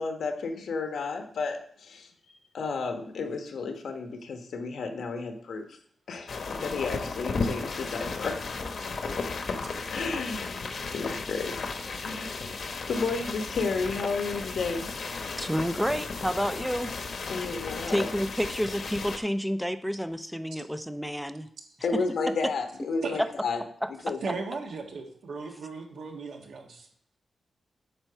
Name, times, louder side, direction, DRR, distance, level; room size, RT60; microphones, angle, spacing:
voice 1, 0.0-2.1 2.5-5.8 6.1-8.4 9.9-10.6 10.9-11.6 12.0-12.4 12.9-14.9 17.3-18.1 21.8-23.6 24.0-24.2, left 4 dB, 80° left, 5 dB, 1.2 m, -32 dB
sound 1, 6.3-19.2, left 4 dB, 55° left, 1.0 m, -34 dB
voice 2, 15.4-16.9 17.9-21.5 21.9-22.0 23.8-24.1, equal, ahead, 11 dB, 0.4 m, -30 dB
voice 3, 24.2-26.9, right 4 dB, 80° right, 2 dB, 1.6 m, -36 dB
8.9 x 4.5 x 6.8 m, 0.63 s
wide cardioid pair, 160°, 0 cm